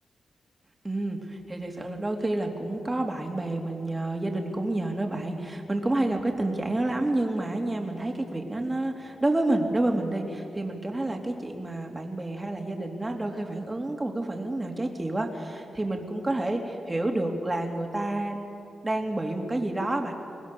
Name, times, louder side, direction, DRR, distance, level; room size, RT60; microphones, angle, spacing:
voice 1, 0.8-18.4 18.8-20.1, right 2 dB, 20° right, 2 dB, 3.0 m, -29 dB
24.0 x 19.5 x 7.0 m, 2.7 s
cardioid pair, 70°, 0 cm